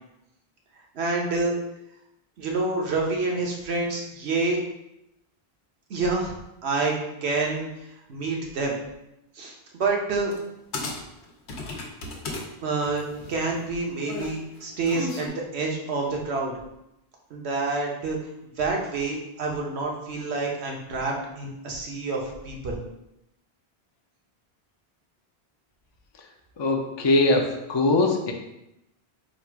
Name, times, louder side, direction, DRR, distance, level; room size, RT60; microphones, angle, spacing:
voice 1, 0.9-1.6 2.4-4.6 5.9-6.3 6.6-6.9 7.2-8.8 9.3-9.5 9.8-10.3 12.6-16.5 17.3-18.2 18.6-22.8, right 3 dB, 80° right, -1 dB, 1.1 m, -28 dB
sound 1, 10.3-10.5 10.7-12.4 12.8-15.3, left 2 dB, 85° left, 1.1 m, -35 dB
voice 2, 26.6-28.3, left 2 dB, 35° left, 2 dB, 0.4 m, -22 dB
4.1 x 2.5 x 4.5 m, 0.87 s
omnidirectional pair, 1.1 m